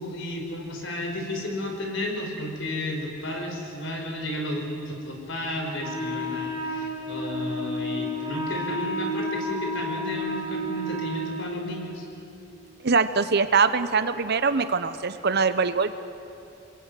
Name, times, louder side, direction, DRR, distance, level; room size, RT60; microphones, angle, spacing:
voice 1, 0.0-12.1, left 1 dB, 65° left, 3 dB, 5.1 m, -32 dB
Wind instrument woodwind instrument, 5.8-11.7, equal, 20° right, 3.8 m, -31 dB
voice 2, 12.8-15.9, right 5 dB, 55° right, 11 dB, 1.0 m, -23 dB
27.5 x 21.5 x 9.3 m, 2.7 s
head